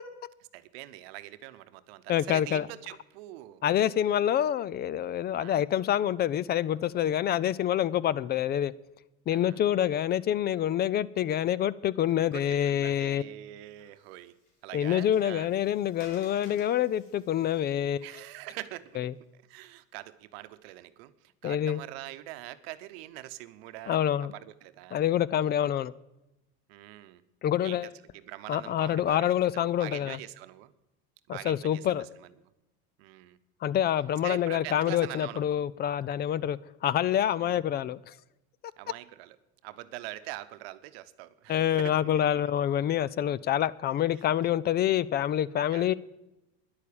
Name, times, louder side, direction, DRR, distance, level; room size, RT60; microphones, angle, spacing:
voice 1, 0.5-3.6 5.4-5.6 9.3-9.6 12.2-14.3 14.6-15.5 18.0-19.0 19.5-21.1 21.4-24.0 24.3-25.0 26.7-27.2 27.6-30.7 31.3-32.3 33.0-33.4 34.2-35.4 37.4-37.5 38.8-39.4 39.6-42.4 45.7-45.9, right 16 dB, 85° right, 0.9 m, -43 dB
voice 2, 2.1-2.7 3.6-8.7 9.3-13.2 14.7-18.1 19.0-19.1 21.4-21.8 23.9-24.3 24.9-25.9 27.4-27.9 28.5-30.2 31.3-32.0 33.6-38.1 41.5-45.9, left 11 dB, 35° left, 0.4 m, -27 dB
Water, 13.8-19.2, left 2 dB, 85° left, 4.2 m, -58 dB
10.5 x 8.6 x 8.6 m
supercardioid pair, 125°, 30 cm